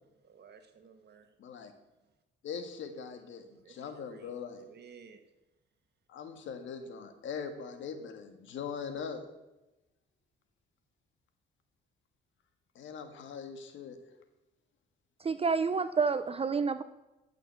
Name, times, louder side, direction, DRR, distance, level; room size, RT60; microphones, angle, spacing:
voice 1, 0.2-1.3 3.6-5.2, right 6 dB, 55° right, 7 dB, 1.7 m, -55 dB
voice 2, 1.4-1.7 2.4-4.6 6.1-9.2 12.8-14.0, left 6 dB, 75° left, 7 dB, 1.8 m, -41 dB
voice 3, 15.2-16.8, right 5 dB, 30° right, 12 dB, 0.6 m, -29 dB
12.5 x 6.4 x 8.2 m, 0.99 s
cardioid pair, 90°, 20 cm